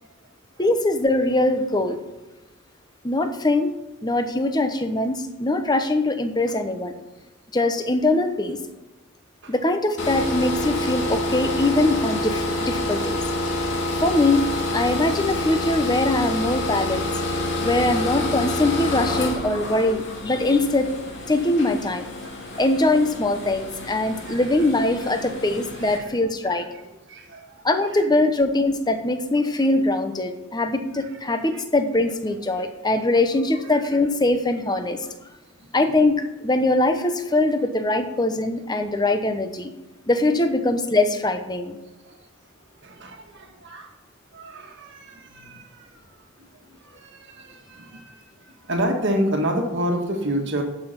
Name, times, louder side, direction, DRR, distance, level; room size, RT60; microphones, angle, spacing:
voice 1, 0.6-2.0 3.0-6.9 7.5-8.6 9.5-13.2 14.0-14.5 14.7-17.1 17.6-20.9 21.3-22.1 22.6-26.7 27.6-35.0 35.7-39.7 40.1-41.8, left 2 dB, 20° left, 7 dB, 0.9 m, -22 dB
sound 1, 10.0-26.0, left 1 dB, 55° left, 2.1 m, -28 dB
voice 2, 21.6-21.9 22.2-22.7 24.0-24.7 25.0-25.2 25.8-26.1 26.4-27.6 27.9-28.1 29.7-29.8 30.9-31.6 32.3-32.6 33.6-33.8 35.6-35.9 38.2-38.3 42.0-42.2 42.8-43.9 44.3-46.1 46.4-46.5 46.8-50.6, right 1 dB, 55° right, 2 dB, 1.6 m, -31 dB
12.0 x 5.5 x 5.9 m, 1.1 s
head